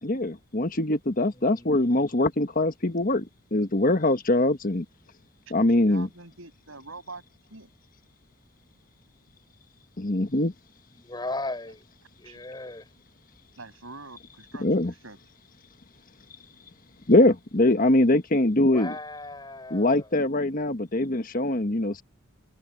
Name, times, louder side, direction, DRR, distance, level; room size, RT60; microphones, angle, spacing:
voice 1, 0.0-3.3 3.5-4.8 5.5-6.1 10.0-10.5 14.6-14.9 17.1-18.9 19.7-22.0, left 1 dB, 40° left, 1.4 m, -23 dB
voice 2, 1.3-2.2 10.9-11.8 12.2-12.9 18.6-20.1, left 2 dB, 20° left, 5.4 m, -37 dB
voice 3, 5.8-7.2 7.5-7.7 12.2-12.4 13.6-14.7 15.0-15.2, right 3 dB, 70° right, 6.6 m, -44 dB
head